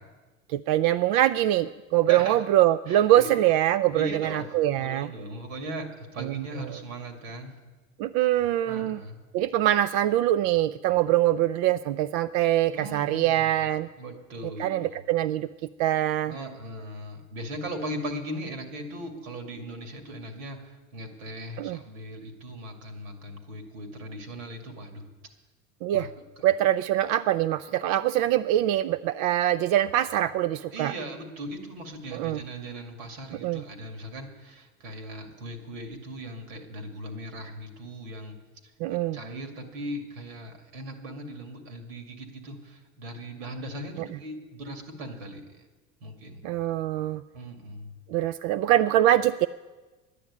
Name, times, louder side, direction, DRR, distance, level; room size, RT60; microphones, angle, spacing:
voice 1, 0.5-5.1 6.2-6.8 8.0-9.0 9.3-13.9 14.6-15.5 15.8-16.3 21.6-21.8 25.8-26.1 26.4-30.9 32.1-32.4 33.4-33.6 38.8-39.2 44.0-44.1 46.4-47.2 48.1-49.5, right 13 dB, 60° right, 13 dB, 0.5 m, -24 dB
voice 2, 2.1-2.4 2.9-3.3 3.9-4.5 4.7-7.6 8.6-9.2 12.7-13.6 14.0-15.0 16.3-25.0 25.9-26.1 30.7-38.4 39.1-45.4 46.0-46.4 47.3-47.9, right 1 dB, 80° right, 5 dB, 2.5 m, -38 dB
10.5 x 10.0 x 8.3 m, 1.2 s
supercardioid pair, 95°, 39 cm